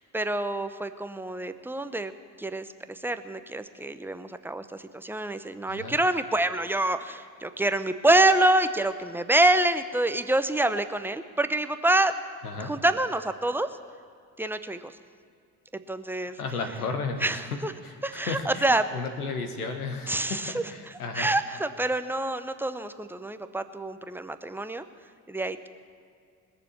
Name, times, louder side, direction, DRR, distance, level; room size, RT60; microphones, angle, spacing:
voice 1, 0.0-2.1 2.4-12.1 12.6-13.7 14.4-14.9 15.9-16.4 17.2-17.7 18.0-18.9 20.1-24.8 25.3-25.7, right 2 dB, 5° right, 11 dB, 0.7 m, -26 dB
voice 2, 16.4-17.2 17.8-18.7 18.9-21.3, left 4 dB, 85° left, 6 dB, 1.1 m, -33 dB
20.5 x 7.0 x 7.1 m, 2.2 s
figure-of-eight pair, 50°, 43 cm